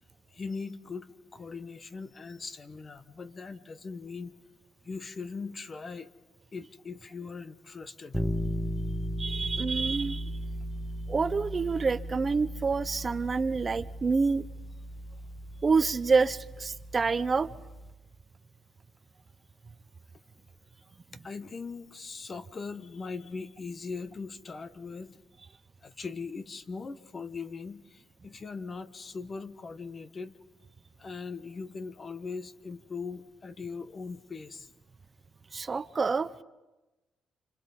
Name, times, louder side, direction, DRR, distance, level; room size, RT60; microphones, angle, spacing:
voice 1, 0.3-4.3 4.8-6.1 6.5-8.2 21.2-25.2 25.8-30.4 31.0-34.7, left 4 dB, 35° left, 11 dB, 1.2 m, -40 dB
sound 1, 8.1-18.0, equal, 5° left, 1.5 m, -36 dB
voice 2, 9.2-10.3 11.1-14.4 15.6-17.5 35.5-36.4, right 4 dB, 35° right, 14 dB, 0.6 m, -27 dB
30.0 x 27.0 x 4.2 m, 1.1 s
cardioid pair, 90°, 0 cm